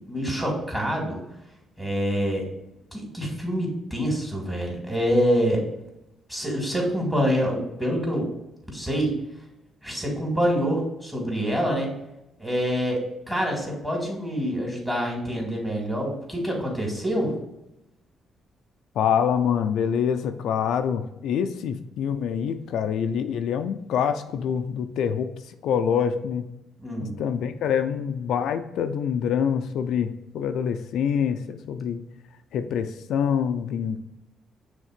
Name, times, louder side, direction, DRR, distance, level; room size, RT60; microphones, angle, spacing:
voice 1, 0.1-1.2 1.8-2.4 2.9-5.6 6.3-8.3 8.7-9.1 9.8-11.9 12.4-17.3 26.8-27.1, equal, 10° right, -1 dB, 2.4 m, -26 dB
voice 2, 19.0-26.4 27.0-32.0 32.5-34.0, left 8 dB, 80° left, 7 dB, 0.4 m, -26 dB
6.4 x 3.5 x 5.1 m, 0.88 s
cardioid pair, 90°, 0 cm